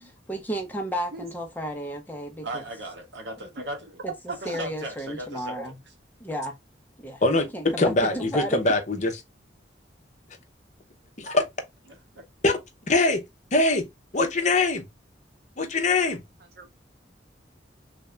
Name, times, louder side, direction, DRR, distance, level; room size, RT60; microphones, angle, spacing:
voice 1, 0.3-2.6 3.4-3.5 4.0-5.8 6.2-6.6 7.0-8.6, equal, 10° left, 0.8 m, -33 dB
voice 2, 2.4-4.0 4.3-5.6 12.2-12.3, right 1 dB, 75° right, 1.2 m, -37 dB
voice 3, 4.3-4.6 16.6-16.7, right 3 dB, 55° right, 0.8 m, -38 dB
voice 4, 7.2-9.1 11.2-11.4 12.4-12.5 12.9-13.2 13.5-13.9 14.1-14.8 15.6-16.2, left 2 dB, 40° left, 0.8 m, -22 dB
3.3 x 2.6 x 3.2 m
head